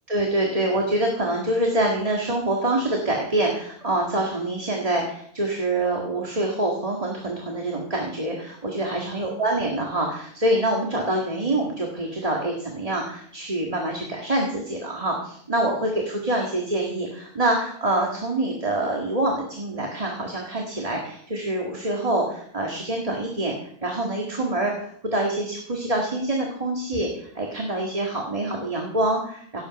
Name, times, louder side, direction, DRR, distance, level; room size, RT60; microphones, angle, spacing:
voice 1, 0.1-23.6 23.8-29.6, right 1 dB, 35° right, 0 dB, 2.0 m, -25 dB
17.0 x 8.7 x 5.3 m, 0.62 s
omnidirectional pair, 1.1 m